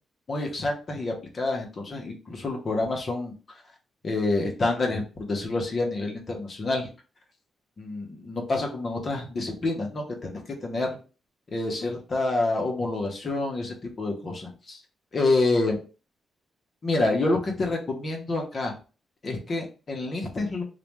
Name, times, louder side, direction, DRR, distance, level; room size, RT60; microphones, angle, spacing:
voice 1, 0.3-3.3 4.0-6.9 7.8-11.0 11.5-14.8 15.1-15.8 16.8-18.7 19.2-20.6, left 2 dB, 45° left, 1 dB, 0.8 m, -28 dB
2.4 x 2.1 x 3.1 m, 0.34 s
cardioid pair, 80°, 0 cm